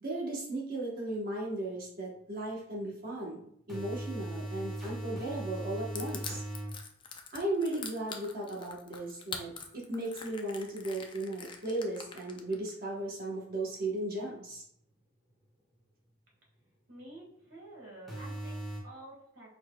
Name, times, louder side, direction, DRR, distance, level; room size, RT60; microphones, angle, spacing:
voice 1, 0.0-6.4 7.3-14.6, right 1 dB, 45° right, -3 dB, 1.0 m, -36 dB
sound 1, 2.2-2.3 3.7-6.8 18.1-18.8, right 1 dB, ahead, 1.1 m, -39 dB
Crushing, 5.9-12.7, left 6 dB, 25° left, 0.4 m, -43 dB
voice 2, 16.9-19.5, right 1 dB, 80° right, -3 dB, 1.8 m, -50 dB
4.7 x 4.4 x 2.2 m, 0.71 s
head